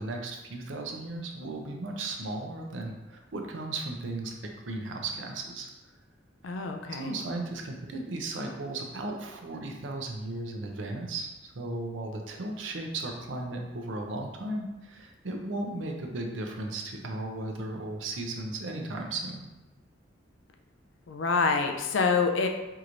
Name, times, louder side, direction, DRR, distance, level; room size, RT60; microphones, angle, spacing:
voice 1, 0.0-5.7 6.8-19.5, right 2 dB, 85° right, 2 dB, 0.6 m, -36 dB
voice 2, 6.4-7.1 21.1-22.5, left 4 dB, 90° left, 4 dB, 0.5 m, -26 dB
4.6 x 3.0 x 2.6 m, 1.1 s
head